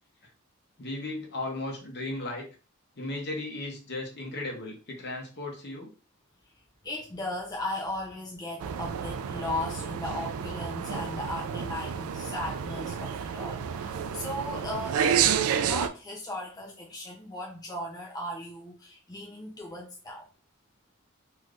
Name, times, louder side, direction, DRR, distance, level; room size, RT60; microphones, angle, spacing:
voice 1, 0.8-2.4 3.0-5.9, left 2 dB, 55° left, 1 dB, 0.9 m, -36 dB
voice 2, 6.8-15.2 15.6-20.2, left 1 dB, 20° left, -2 dB, 0.5 m, -37 dB
sound 1, 8.6-15.9, right 8 dB, 80° right, 0.3 m, -30 dB
3.3 x 2.8 x 2.4 m, 0.35 s
head